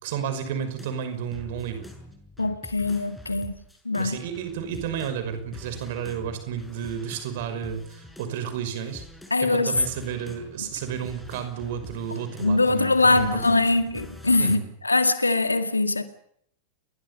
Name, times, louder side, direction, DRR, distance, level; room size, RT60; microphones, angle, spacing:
voice 1, 0.0-1.9 3.9-9.0 9.4-13.6 14.4-14.7, right 8 dB, 55° right, 5.7 m, -32 dB
sound 1, 0.7-9.5 9.7-14.6, left 1 dB, 5° left, 6.5 m, -45 dB
voice 2, 2.4-3.6 3.9-4.2 9.3-9.8 10.6-10.7 12.4-16.0, left 2 dB, 80° left, 2.1 m, -22 dB
29.5 x 22.0 x 5.6 m
figure-of-eight pair, 90°, 0 cm